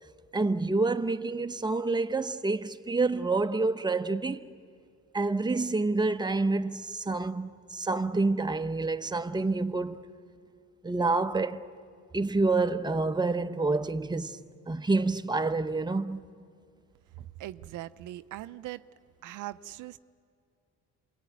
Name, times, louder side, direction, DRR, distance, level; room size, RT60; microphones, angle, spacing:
voice 1, 0.3-4.5 5.1-10.1 10.8-11.7 12.1-16.2, right 3 dB, 15° right, 0.9 m, -28 dB
voice 2, 17.4-18.8 19.2-20.0, right 14 dB, 85° right, 0.7 m, -40 dB
27.0 x 22.5 x 9.4 m
cardioid pair, 90°, 30 cm